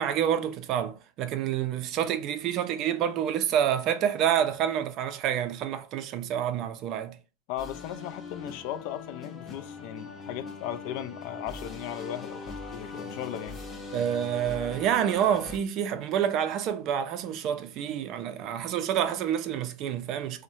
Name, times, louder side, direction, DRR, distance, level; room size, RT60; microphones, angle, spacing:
voice 1, 0.0-7.2 13.9-20.4, right 9 dB, 45° right, 0.4 m, -28 dB
voice 2, 7.5-13.6, left 11 dB, 60° left, 0.3 m, -37 dB
sound 1, 7.6-15.6, left 3 dB, 25° left, 0.7 m, -41 dB
2.6 x 2.1 x 2.9 m
supercardioid pair, 115°, 0 cm